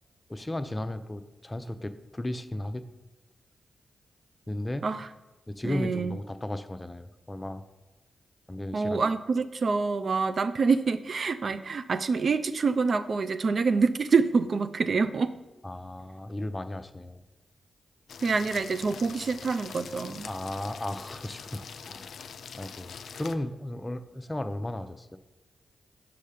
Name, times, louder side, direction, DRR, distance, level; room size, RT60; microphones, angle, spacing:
voice 1, 0.3-2.8 4.5-4.8 5.5-7.6 8.5-9.0 15.6-17.2 20.2-22.1 22.5-25.2, left 1 dB, 20° left, 9 dB, 0.5 m, -35 dB
voice 2, 5.6-6.2 8.7-15.3 18.2-20.3, right 4 dB, 60° right, 11 dB, 0.3 m, -26 dB
sound 1, 18.1-23.3, left 6 dB, 75° left, 0.3 m, -43 dB
5.5 x 5.4 x 5.0 m, 1.0 s
supercardioid pair, 40°, 0 cm